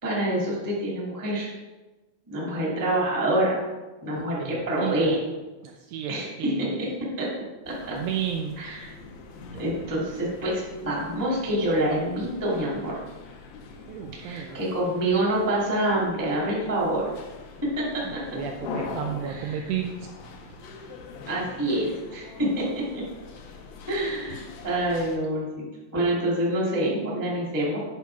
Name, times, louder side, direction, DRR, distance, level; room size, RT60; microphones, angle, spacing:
voice 1, 0.0-1.5 2.3-3.6 4.0-5.2 6.1-6.9 7.2-7.3 7.6-8.0 8.6-8.9 9.5-13.0 14.2-17.1 17.8-18.2 19.2-19.6 21.3-23.0 23.9-25.6 25.9-27.8, right 1 dB, 10° right, -5 dB, 0.9 m, -26 dB
voice 2, 4.1-5.2 5.6-6.8 7.9-8.6 13.9-14.6 18.1-20.1 20.5-20.6, right 9 dB, 85° right, 3 dB, 2.4 m, -33 dB
sound 1, 7.7-25.2, left 4 dB, 80° left, 2.1 m, -42 dB
8.9 x 5.6 x 4.7 m, 1.2 s
omnidirectional pair, 5.3 m